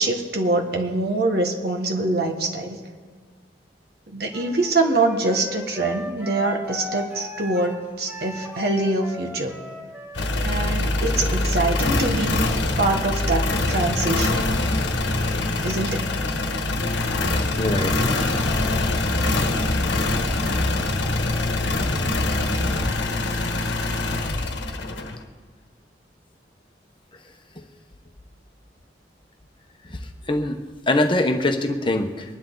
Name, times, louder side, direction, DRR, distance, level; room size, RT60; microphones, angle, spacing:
voice 1, 0.0-2.8 4.1-9.6 10.4-12.5 12.8-14.5 15.6-16.1, right 2 dB, 60° right, 2 dB, 1.4 m, -24 dB
Wind instrument woodwind instrument, 4.3-11.8, left 1 dB, 10° right, 2.1 m, -37 dB
sound 1, 10.1-25.2, left 2 dB, 90° left, 1.3 m, -23 dB
voice 2, 17.6-17.9 29.9-30.0 30.3-30.6 30.9-32.2, left 1 dB, 30° left, 5 dB, 1.0 m, -22 dB
24.0 x 10.5 x 3.9 m, 1.5 s
head